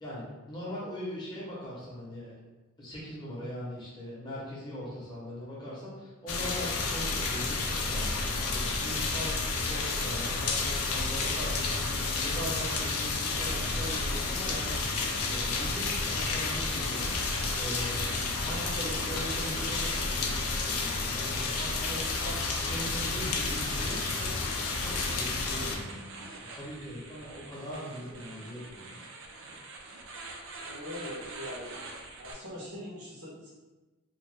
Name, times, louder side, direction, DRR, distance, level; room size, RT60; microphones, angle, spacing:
voice 1, 0.0-2.4 2.8-24.3 24.7-26.2 26.5-28.9, equal, 20° left, -7 dB, 0.8 m, -41 dB
sound 1, 6.3-25.8, left 3 dB, 80° left, 0.5 m, -31 dB
sound 2, 12.7-32.3, right 3 dB, 55° right, 0.4 m, -46 dB
voice 2, 30.6-31.8 32.2-33.5, left 1 dB, 90° right, -6 dB, 1.2 m, -42 dB
2.9 x 2.2 x 3.2 m, 1.1 s
head